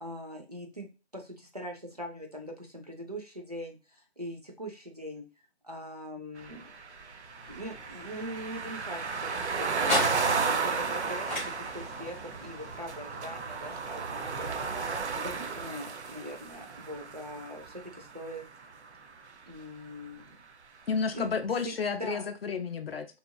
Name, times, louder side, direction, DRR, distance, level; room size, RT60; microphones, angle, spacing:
voice 1, 0.0-0.9 1.1-5.2 5.6-6.7 7.5-10.0 10.5-14.5 15.1-18.5 19.5-20.4 21.1-21.3 21.6-22.3, equal, 35° right, 1 dB, 0.4 m, -42 dB
sound 1, 6.4-18.4, right 5 dB, 80° right, 0.6 m, -33 dB
sound 2, 6.9-15.1, left 1 dB, 10° right, 0.7 m, -39 dB
voice 2, 20.9-23.1, left 5 dB, 60° left, 8 dB, 0.5 m, -31 dB
2.8 x 2.4 x 2.3 m, 0.31 s
hypercardioid pair, 175°, 34 cm